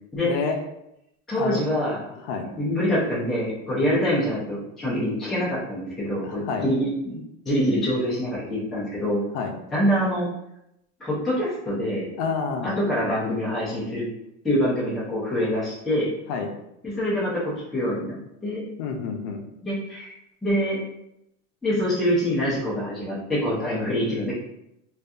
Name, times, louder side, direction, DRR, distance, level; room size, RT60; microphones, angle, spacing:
voice 1, 0.2-0.6 1.4-1.6 2.1-2.5 6.2-6.7 9.3-9.6 12.2-12.7 16.3-16.5 18.8-19.4, left 5 dB, 65° left, 3 dB, 0.5 m, -28 dB
voice 2, 1.3-2.0 2.6-9.2 9.7-10.3 11.0-12.0 12.6-14.1 14.4-16.1 16.8-18.2 18.4-18.6 19.6-20.1 20.4-20.8 21.6-24.3, equal, ahead, -9 dB, 0.3 m, -25 dB
2.6 x 2.3 x 2.3 m, 0.82 s
cardioid pair, 175°, 31 cm